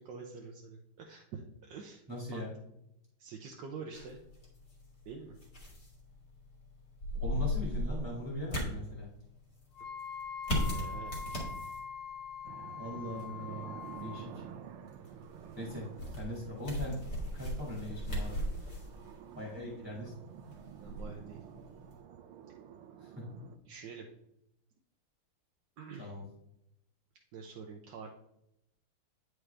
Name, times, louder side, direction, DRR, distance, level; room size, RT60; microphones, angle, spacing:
voice 1, 0.0-2.0 2.3-2.4 3.2-4.2 5.1-5.3 10.7-11.2 20.8-21.4 23.7-24.1 25.8-26.1 27.3-28.1, right 5 dB, 70° right, 1 dB, 1.1 m, -46 dB
voice 2, 2.1-2.5 7.2-9.1 12.8-13.7 14.0-14.4 15.5-15.9 16.2-18.5 19.3-20.1 23.0-23.4 26.0-26.2, equal, 5° right, -5 dB, 1.5 m, -40 dB
sound 1, 3.9-22.0, left 1 dB, 45° left, 2.4 m, -39 dB
Wind instrument woodwind instrument, 9.7-14.3, left 6 dB, 90° left, 1.6 m, -43 dB
sound 2, 12.4-23.6, right 9 dB, 90° right, 1.5 m, -50 dB
9.1 x 4.8 x 3.3 m, 0.80 s
omnidirectional pair, 2.3 m